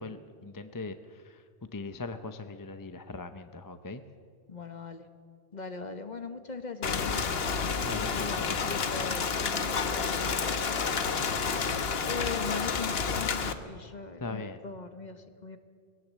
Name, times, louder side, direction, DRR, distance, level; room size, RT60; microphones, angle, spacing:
voice 1, 0.0-1.4 1.7-4.0 7.8-8.7 14.2-14.6, left 3 dB, 20° left, 9 dB, 0.7 m, -40 dB
voice 2, 4.5-5.1 5.5-7.4 7.9-11.4 12.1-15.6, left 4 dB, 45° left, 8 dB, 1.3 m, -40 dB
Rain, 6.8-13.5, left 5 dB, 75° left, 1.3 m, -30 dB
22.0 x 17.0 x 7.5 m, 2.1 s
omnidirectional pair, 1.0 m